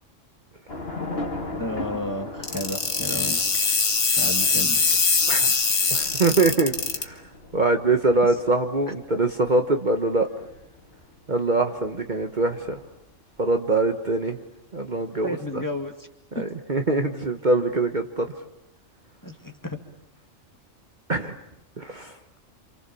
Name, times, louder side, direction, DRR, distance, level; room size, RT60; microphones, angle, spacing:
Thunder / Rain, 0.7-13.2, left 2 dB, 50° left, 3.2 m, -39 dB
voice 1, 1.6-3.7 4.2-5.0 8.9-9.0 15.2-16.1 16.3-16.4 19.2-19.8, left 1 dB, 15° left, 4 dB, 2.2 m, -32 dB
sound 1, 2.4-7.0, left 4 dB, 70° left, 2.0 m, -22 dB
voice 2, 5.9-7.2 7.5-10.3 11.3-12.8 13.4-14.4 14.7-15.4 16.3-18.3 21.1-21.4 21.8-22.1, right 3 dB, 40° right, 5 dB, 1.4 m, -23 dB
28.0 x 28.0 x 7.1 m, 0.81 s
omnidirectional pair, 1.3 m